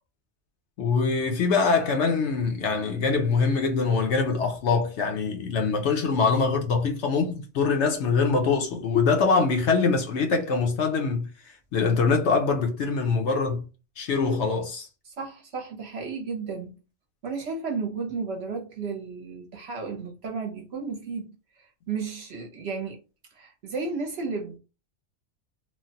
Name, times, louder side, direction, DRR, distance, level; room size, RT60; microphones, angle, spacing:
voice 1, 0.8-11.3 11.7-13.6 14.0-14.9, left 4 dB, 65° left, 0.9 m, -23 dB
voice 2, 15.0-16.8 17.2-23.0 23.3-24.6, right 4 dB, 60° right, 0.9 m, -33 dB
3.1 x 2.1 x 2.7 m
omnidirectional pair, 1.4 m